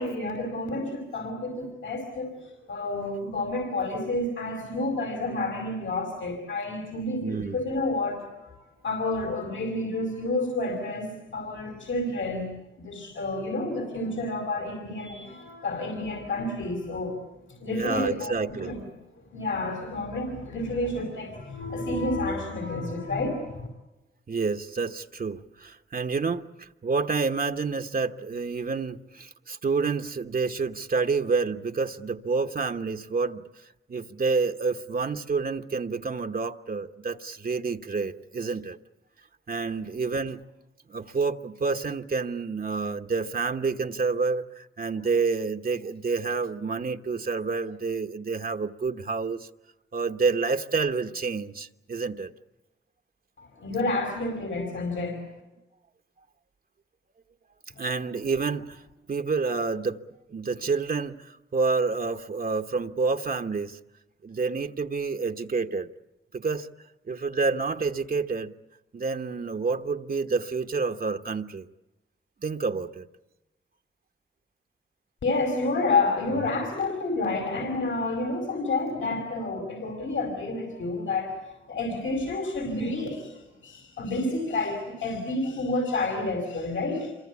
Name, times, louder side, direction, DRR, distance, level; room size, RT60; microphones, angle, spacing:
voice 1, 0.0-8.5 8.8-12.5 12.8-17.2 17.6-18.8 19.3-23.7 53.4-55.2 57.8-57.9 75.2-81.4 81.7-87.1, left 2 dB, 75° left, 5.1 m, -30 dB
voice 2, 7.2-7.6 17.7-18.7 24.3-38.8 39.5-40.4 40.9-49.5 49.9-52.3 57.8-58.8 59.1-60.0 60.3-63.8 64.2-65.9 66.3-66.7 67.1-68.5 68.9-71.7 72.4-73.1, right 4 dB, 45° right, 1.2 m, -28 dB
27.0 x 24.0 x 8.5 m
cardioid pair, 70°, 20 cm